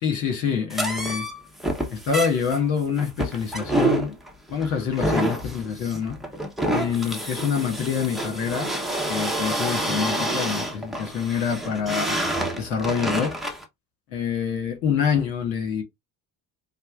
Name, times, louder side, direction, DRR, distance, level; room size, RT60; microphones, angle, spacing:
voice 1, 0.0-1.3 1.9-4.2 4.5-6.2 6.7-8.7 9.1-12.2 12.5-13.3 14.1-15.8, left 7 dB, 70° left, 1.7 m, -26 dB
sound 1, 0.7-13.6, right 1 dB, ahead, 1.0 m, -28 dB
5.4 x 2.1 x 2.5 m
hypercardioid pair, 55°, 49 cm